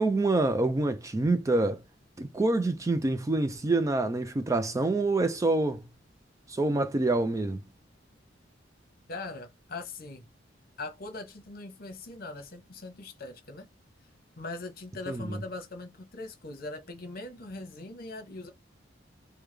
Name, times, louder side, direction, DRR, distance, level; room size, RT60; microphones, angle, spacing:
voice 1, 0.0-1.8 2.2-5.8 6.5-7.6 15.1-15.4, right 2 dB, 15° right, 0.3 m, -26 dB
voice 2, 9.1-10.2 10.8-13.7 14.4-18.5, left 2 dB, 50° left, 1.0 m, -41 dB
3.5 x 2.2 x 3.2 m
head